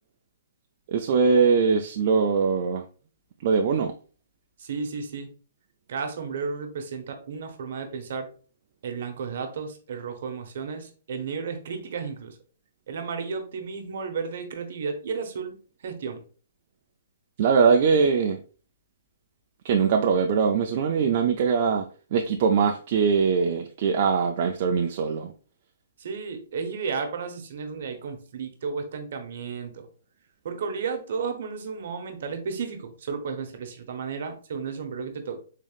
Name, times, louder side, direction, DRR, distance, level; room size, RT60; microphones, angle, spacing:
voice 1, 0.9-2.8 3.4-3.9 17.4-18.4 19.6-21.9 22.1-25.3, right 5 dB, 40° right, 3 dB, 0.3 m, -22 dB
voice 2, 4.6-5.3 5.9-8.3 8.8-12.4 12.9-15.6 15.8-16.2 26.0-29.9 30.4-35.4, right 5 dB, 60° right, 6 dB, 0.8 m, -33 dB
3.7 x 3.5 x 2.3 m, 0.38 s
hypercardioid pair, 160°, 0 cm